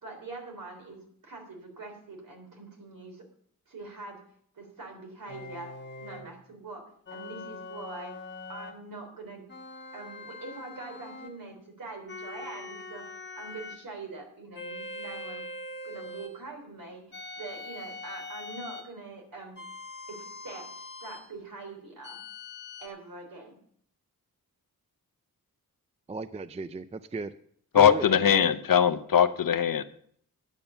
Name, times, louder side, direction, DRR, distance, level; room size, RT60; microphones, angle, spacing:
voice 1, 0.0-3.2 3.7-4.2 4.5-6.8 7.1-8.1 8.5-9.5 9.9-13.0 13.3-15.4 15.8-19.6 20.1-22.2 22.8-23.6, right 3 dB, 65° right, 3 dB, 3.5 m, -43 dB
sound 1, 5.3-6.3 7.1-8.8 9.5-11.4 12.1-13.8 14.5-16.4 17.1-18.9 19.6-21.3 22.0-22.9, left 2 dB, 30° left, 1.5 m, -42 dB
voice 2, 26.1-27.3 27.7-28.4, right 3 dB, 20° right, 13 dB, 0.4 m, -36 dB
voice 3, 27.7-29.8, left 8 dB, 65° left, 12 dB, 0.8 m, -21 dB
10.5 x 7.2 x 6.9 m, 0.62 s
wide cardioid pair, 115°, 36 cm